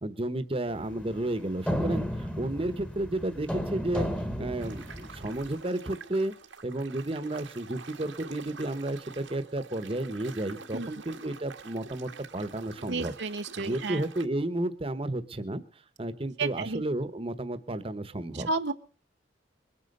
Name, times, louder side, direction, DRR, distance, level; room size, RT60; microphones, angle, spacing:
voice 1, 0.0-4.1 4.4-6.3 6.6-13.1 13.6-15.6 16.0-18.5, right 1 dB, 30° right, 11 dB, 1.1 m, -32 dB
sound 1, 0.7-5.5, equal, 5° left, 1.4 m, -34 dB
sound 2, 4.6-14.3, right 5 dB, 90° right, 1.9 m, -47 dB
voice 2, 12.9-14.1 16.4-16.8 18.3-18.7, right 3 dB, 65° right, 6 dB, 0.8 m, -32 dB
21.5 x 9.6 x 6.7 m, 0.41 s
head